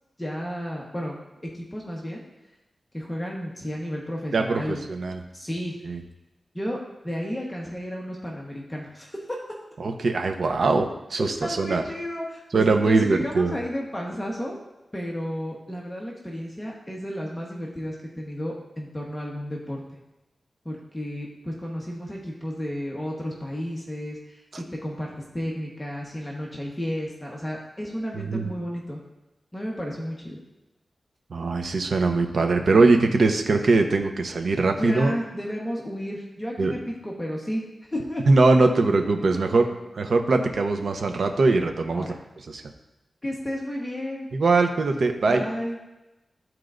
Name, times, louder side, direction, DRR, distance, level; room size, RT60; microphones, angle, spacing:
voice 1, 0.2-1.2 1.4-2.2 2.9-4.8 5.3-5.8 6.5-6.8 7.0-9.4 11.2-14.6 14.9-19.8 20.6-29.0 29.5-30.4 34.8-37.6 37.9-38.2 39.3-39.7 41.9-42.1 43.2-44.3 45.3-45.8, equal, 15° left, -2 dB, 1.2 m, -32 dB
voice 2, 4.3-5.2 5.9-6.0 9.8-11.8 12.5-13.5 28.1-28.5 31.3-35.1 36.6-36.7 38.3-39.7 40.0-42.0 42.5-42.6 44.3-45.4, right 3 dB, 70° right, 5 dB, 0.8 m, -21 dB
13.5 x 4.6 x 2.6 m, 0.98 s
wide cardioid pair, 85°, 0 cm